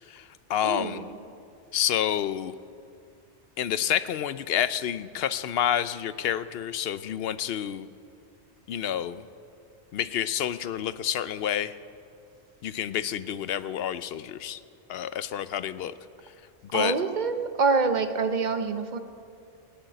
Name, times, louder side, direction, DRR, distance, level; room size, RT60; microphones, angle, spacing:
voice 1, 0.1-1.1 1.7-2.5 3.6-7.9 8.7-9.3 9.9-11.8 12.6-14.6 14.9-15.9 16.7-16.9, left 10 dB, 65° left, 14 dB, 0.7 m, -29 dB
voice 2, 0.6-1.1 16.7-19.0, right 4 dB, 45° right, 8 dB, 1.0 m, -26 dB
17.0 x 9.2 x 8.8 m, 2.4 s
omnidirectional pair, 1.2 m